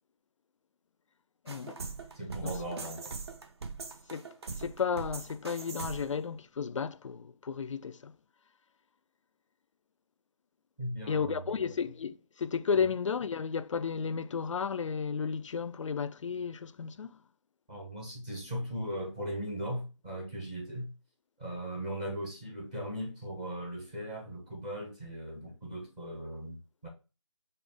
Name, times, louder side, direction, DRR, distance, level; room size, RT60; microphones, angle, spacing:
voice 1, 1.5-1.8 2.4-2.5 4.1-4.2 4.6-8.1 11.1-17.2, left 6 dB, 65° left, 0.4 m, -33 dB
sound 1, 1.5-6.2, right 4 dB, 50° right, 0.6 m, -41 dB
voice 2, 2.1-3.2 10.8-11.7 17.7-20.9 21.4-26.9, equal, 15° right, 0.7 m, -38 dB
5.0 x 2.3 x 3.3 m
figure-of-eight pair, 165°, 17 cm